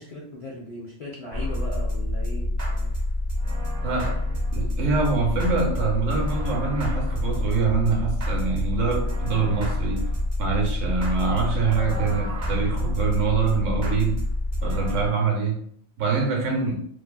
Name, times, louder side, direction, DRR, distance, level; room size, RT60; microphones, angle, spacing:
voice 1, 0.0-2.9 3.9-4.0, left 1 dB, 60° left, 0.4 m, -38 dB
sound 1, 1.3-15.1, left 1 dB, 40° right, 0.6 m, -27 dB
voice 2, 3.8-4.2 4.5-10.1 10.4-14.2 14.6-15.6 16.0-16.8, right 5 dB, 90° right, 1.0 m, -25 dB
2.6 x 2.4 x 2.3 m
omnidirectional pair, 1.2 m